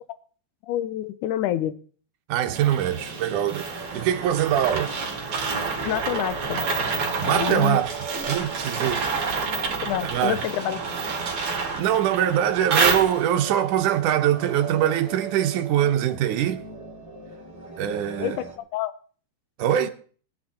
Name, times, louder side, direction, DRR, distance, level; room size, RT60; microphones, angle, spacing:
voice 1, 0.6-1.8 5.8-6.6 7.2-7.8 9.8-10.8 18.2-18.9, left 12 dB, 75° left, 1.8 m, -27 dB
voice 2, 2.3-3.7 3.9-4.9 7.2-7.9 8.3-9.1 9.9-10.4 11.8-16.6 17.8-18.4 19.6-19.9, right 11 dB, 65° right, 2.1 m, -23 dB
sound 1, 2.5-18.6, right 4 dB, 10° left, 1.8 m, -40 dB
sound 2, 2.6-13.5, right 4 dB, 40° right, 2.8 m, -29 dB
20.0 x 9.8 x 4.3 m
omnidirectional pair, 4.5 m